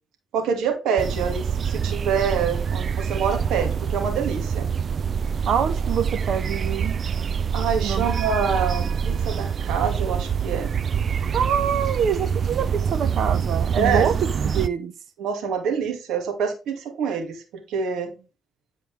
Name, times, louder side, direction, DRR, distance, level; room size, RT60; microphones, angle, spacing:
voice 1, 0.3-4.7 7.5-10.7 13.8-14.1 15.2-18.1, right 6 dB, 80° right, 2.4 m, -26 dB
sound 1, 1.0-14.7, right 7 dB, 45° right, 0.4 m, -25 dB
voice 2, 5.5-7.0 7.8-8.1 11.3-14.9, right 7 dB, 65° right, 1.4 m, -25 dB
11.0 x 4.8 x 3.5 m
cardioid pair, 90°, 0 cm